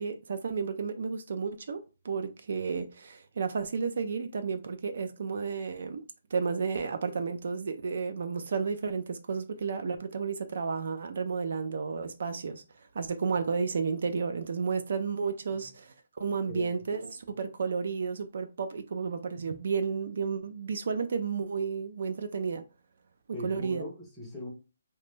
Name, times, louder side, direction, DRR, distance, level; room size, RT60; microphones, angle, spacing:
voice 1, 0.0-6.0 6.3-12.6 12.9-15.9 16.2-22.6 23.4-23.8, right 5 dB, 50° right, 0.3 m, -32 dB
voice 2, 23.3-24.5, left 1 dB, 5° left, 0.5 m, -40 dB
2.9 x 2.2 x 3.1 m
hypercardioid pair, 175°, 0 cm